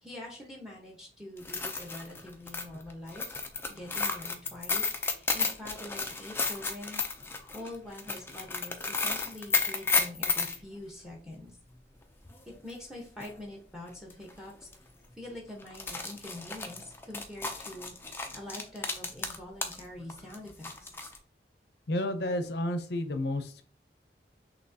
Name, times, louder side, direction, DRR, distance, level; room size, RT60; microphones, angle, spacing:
voice 1, 0.0-3.4 3.7-7.0 7.5-11.5 12.6-14.7 15.2-17.9 18.3-20.9, left 1 dB, ahead, -1 dB, 1.0 m, -45 dB
sound 1, 1.4-10.6 12.7-12.8 13.2-13.3 14.1-14.3 14.6-14.7 15.6-19.8 20.1-21.2, left 4 dB, 15° left, 0.4 m, -32 dB
voice 2, 21.9-23.6, left 1 dB, 75° left, 8 dB, 0.6 m, -31 dB
6.2 x 2.9 x 2.7 m, 0.43 s
head